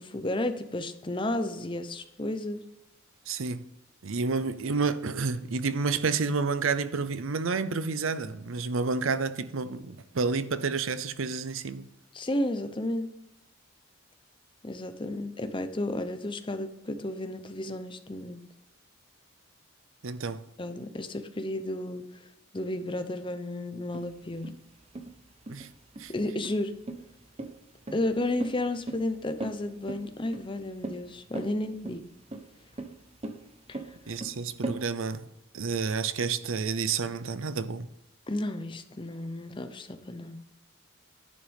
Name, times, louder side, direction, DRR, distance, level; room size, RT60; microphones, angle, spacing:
voice 1, 0.0-2.6 12.1-13.1 14.6-18.4 20.6-22.1 22.5-24.5 26.1-26.7 27.9-32.0 33.7-33.8 38.3-40.4, left 1 dB, 25° left, 0.7 m, -32 dB
voice 2, 3.3-3.6 4.0-11.9 20.0-20.4 25.5-25.7 26.0-26.1 34.1-35.2 35.5-37.9, right 4 dB, 75° right, 0.6 m, -30 dB
sound 1, 23.9-34.8, right 2 dB, 30° right, 0.9 m, -39 dB
10.5 x 9.1 x 3.5 m
head